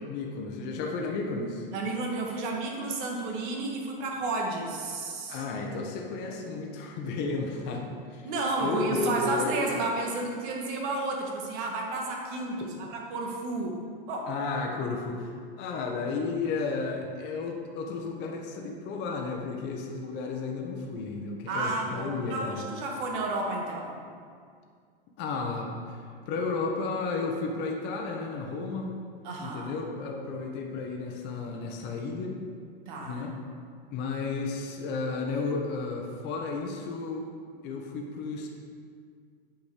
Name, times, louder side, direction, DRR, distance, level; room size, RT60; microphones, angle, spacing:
voice 1, 0.1-1.7 5.3-8.3 8.6-9.5 14.3-15.3 15.6-22.7 25.2-26.0 26.3-28.9 29.4-32.4 33.0-33.3 33.9-37.3 37.6-38.5, left 4 dB, 35° left, 1 dB, 1.1 m, -33 dB
voice 2, 1.7-5.4 8.2-13.8 14.1-14.3 21.5-24.0 29.2-29.7 32.9-33.2, right 2 dB, 55° right, 0 dB, 1.9 m, -31 dB
8.7 x 5.2 x 5.0 m, 2.1 s
hypercardioid pair, 125°, 30 cm